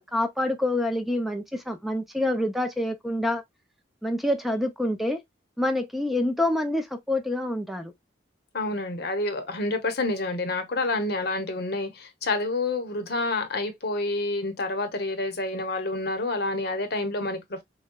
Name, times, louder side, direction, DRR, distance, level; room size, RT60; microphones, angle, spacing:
voice 1, 0.0-3.4 4.0-5.2 5.6-7.9, left 1 dB, ahead, 0.5 m, -27 dB
voice 2, 8.5-17.6, left 2 dB, 60° left, 0.9 m, -28 dB
6.3 x 2.1 x 2.3 m
head